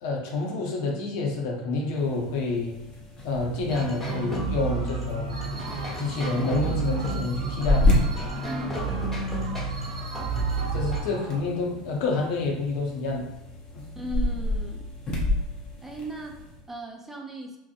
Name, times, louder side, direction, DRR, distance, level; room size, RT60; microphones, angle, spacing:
voice 1, 0.0-2.7 3.2-5.5 6.0-8.0 10.7-13.3 13.7-13.9, left 3 dB, 65° left, -1 dB, 0.7 m, -28 dB
sound 1, 1.9-16.6, left 1 dB, 35° left, 0.7 m, -31 dB
sound 2, 3.7-11.0, right 3 dB, 5° left, 1.1 m, -30 dB
sound 3, 4.1-11.5, right 4 dB, 85° right, 0.4 m, -43 dB
voice 2, 8.5-9.2 14.0-14.9 15.8-17.6, right 1 dB, 10° right, 1 dB, 0.4 m, -37 dB
2.8 x 2.0 x 2.5 m, 0.93 s
hypercardioid pair, 90°, 3 cm